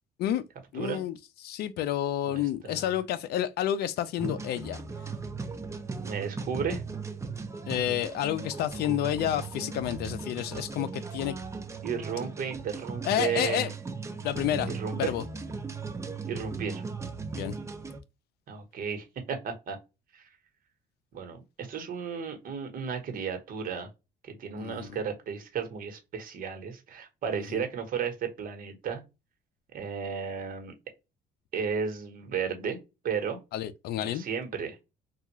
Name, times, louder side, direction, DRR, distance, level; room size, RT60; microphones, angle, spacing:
voice 1, 0.7-1.2 1.4-4.8 7.7-11.4 13.0-13.7 14.2-15.2 17.3-17.5 24.6-24.9 27.4-27.6 33.5-34.2, left 11 dB, 70° left, 0.5 m, -30 dB
voice 2, 2.2-2.9 6.0-6.8 8.3-8.8 11.8-13.7 14.7-15.1 16.3-16.8 18.5-19.8 20.1-20.3 21.1-23.9 24.2-29.0 29.7-30.7 31.5-32.8 33.0-33.4 34.0-34.8, right 6 dB, 55° right, 1.1 m, -34 dB
sound 1, 4.2-18.0, right 4 dB, 15° right, 0.5 m, -37 dB
3.4 x 2.4 x 3.0 m
cardioid pair, 110°, 17 cm